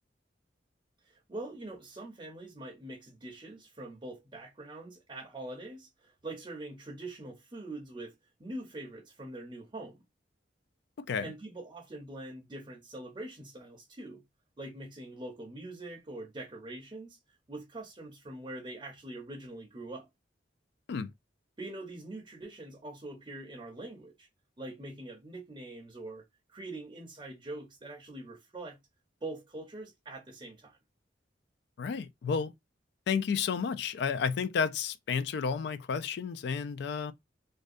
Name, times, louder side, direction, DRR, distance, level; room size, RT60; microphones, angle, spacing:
voice 1, 1.0-8.1 8.4-10.0 11.2-14.2 14.6-20.1 21.6-24.3 24.6-26.2 26.5-28.8 29.2-30.8, right 2 dB, 25° right, 0.6 m, -43 dB
voice 2, 11.0-11.3 20.9-21.1 31.8-32.5 33.1-37.1, left 6 dB, 65° left, 0.3 m, -31 dB
2.6 x 2.2 x 2.4 m
head